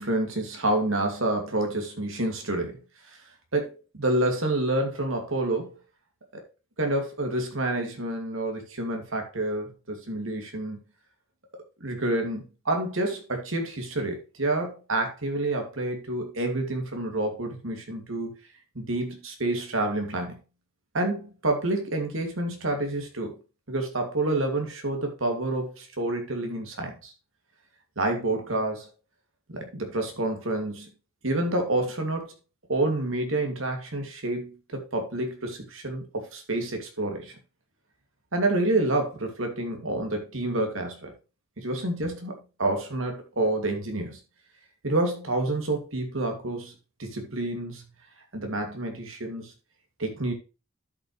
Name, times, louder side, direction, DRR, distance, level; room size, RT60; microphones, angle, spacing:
voice 1, 0.0-2.8 3.1-3.2 3.5-5.7 6.8-10.8 11.8-18.3 18.7-20.4 20.9-23.4 23.7-27.1 28.0-28.9 29.5-30.9 31.2-32.3 32.7-37.4 38.3-41.1 41.6-44.2 44.8-46.7 47.0-47.8 48.3-49.5 50.0-50.3, right 2 dB, 80° right, 2.4 m, -28 dB
12.0 x 5.8 x 3.2 m
head